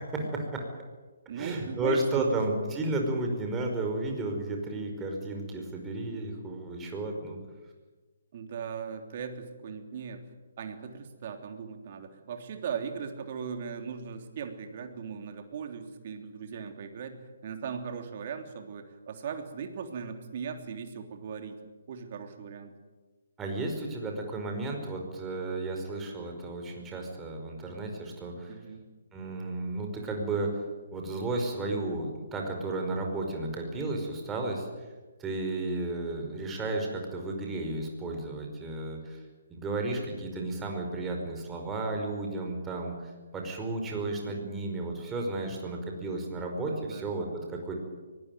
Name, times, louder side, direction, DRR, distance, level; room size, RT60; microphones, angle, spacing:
voice 1, 0.1-0.6 1.3-7.4 23.4-28.6 29.1-30.6 30.9-34.7 35.2-39.2 39.5-47.7, right 2 dB, 15° right, 2 dB, 5.2 m, -33 dB
voice 2, 1.3-2.3 8.3-10.2 10.6-21.6 21.9-22.7 28.5-28.8 44.3-44.5 46.7-47.1, right 6 dB, 45° right, 6 dB, 3.3 m, -38 dB
23.0 x 19.0 x 9.4 m, 1.3 s
figure-of-eight pair, 140°, 0 cm